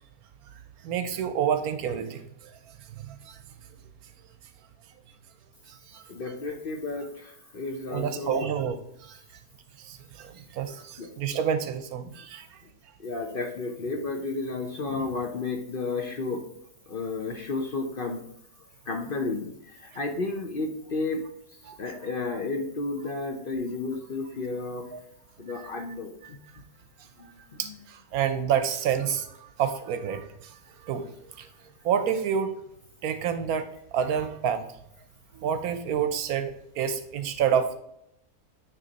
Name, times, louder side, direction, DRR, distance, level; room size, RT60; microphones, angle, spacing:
voice 1, 0.8-2.2 3.0-3.4 5.7-6.0 7.9-9.2 9.8-12.5 21.6-21.7 27.6-30.6 30.8-31.5 31.8-32.5 33.0-34.7 35.3-37.8, right 8 dB, 70° right, 9 dB, 1.0 m, -29 dB
voice 2, 6.1-8.5 11.0-11.1 13.0-16.4 16.9-18.2 18.9-21.2 21.6-24.9 25.4-26.4 27.2-27.7, left 3 dB, 50° left, 3 dB, 0.6 m, -32 dB
9.3 x 3.1 x 4.0 m, 0.76 s
omnidirectional pair, 1.7 m